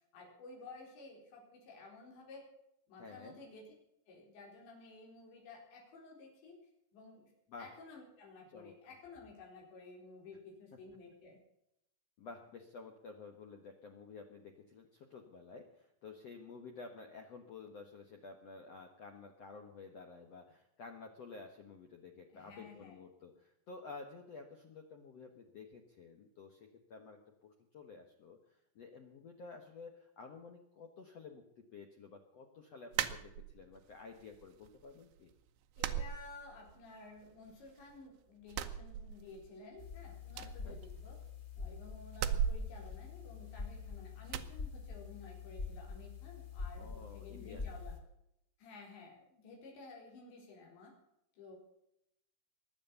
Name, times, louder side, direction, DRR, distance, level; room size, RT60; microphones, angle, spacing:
voice 1, 0.1-2.5 2.9-3.7 4.1-6.6 6.9-7.3 7.6-11.4 22.3-23.0 35.8-41.2 41.6-47.9 48.6-50.9 51.3-51.6, left 3 dB, 85° left, -1 dB, 6.5 m, -53 dB
voice 2, 3.0-3.4 7.5-7.7 8.5-8.7 12.2-35.3 40.4-40.8 46.8-47.7, left 4 dB, 65° left, 4 dB, 1.6 m, -52 dB
sound 1, 32.9-33.8 34.2-34.9 35.2-35.3 35.8-36.9 37.2-38.0 38.4-39.6 39.9-40.0 40.3-41.5 42.1-43.8 44.3-44.6, right 9 dB, 85° right, 3.2 m, -38 dB
sound 2, 39.8-48.0, left 5 dB, 20° left, 2.6 m, -45 dB
22.0 x 8.6 x 7.0 m, 0.80 s
omnidirectional pair, 5.0 m